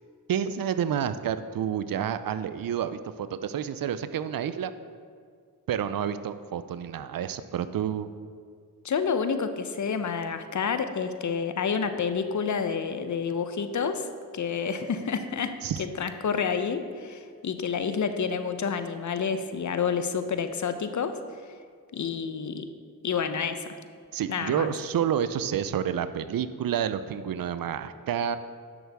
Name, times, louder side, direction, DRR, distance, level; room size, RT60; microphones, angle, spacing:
voice 1, 0.3-4.7 5.7-8.1 15.6-15.8 24.1-28.4, right 9 dB, 65° right, 13 dB, 0.5 m, -29 dB
voice 2, 8.8-14.1 14.3-15.5 15.8-21.2 21.9-22.7 23.0-23.7 24.3-24.7, left 6 dB, 50° left, 9 dB, 0.7 m, -29 dB
10.5 x 6.1 x 3.5 m, 2.1 s
cardioid pair, 50°, 38 cm